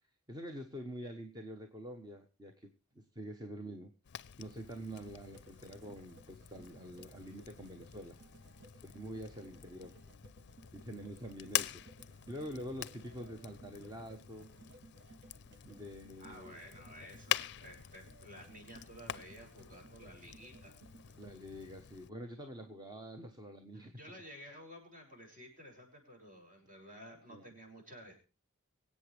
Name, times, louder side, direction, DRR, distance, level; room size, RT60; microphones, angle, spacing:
voice 1, 0.3-3.9 4.4-8.2 8.8-10.0 10.7-14.5 15.6-16.6 21.2-24.2 27.3-27.4, equal, 20° right, 5 dB, 1.1 m, -46 dB
Fire, 4.0-22.1, left 11 dB, 55° left, 0.5 m, -45 dB
sound 1, 4.7-21.3, right 2 dB, 55° right, 1.1 m, -61 dB
voice 2, 16.2-20.7 24.0-28.2, equal, 40° right, 1 dB, 6.7 m, -53 dB
24.5 x 8.5 x 3.3 m, 0.33 s
head